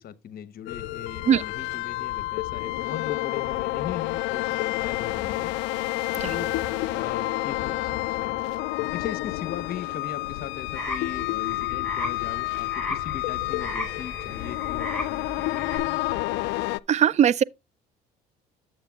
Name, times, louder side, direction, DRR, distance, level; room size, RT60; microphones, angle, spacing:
voice 1, 0.0-5.5 6.3-6.6 6.9-8.4 8.8-16.0, left 9 dB, 55° left, 1.0 m, -39 dB
sound 1, 0.7-16.8, left 19 dB, 75° left, 0.4 m, -29 dB
sound 2, 3.4-11.2, right 8 dB, 75° right, 2.1 m, -49 dB
sound 3, 10.7-15.8, left 1 dB, 5° left, 4.6 m, -36 dB
voice 2, 16.9-17.4, right 9 dB, 40° right, 0.4 m, -19 dB
11.0 x 7.7 x 2.3 m
supercardioid pair, 80°, 19 cm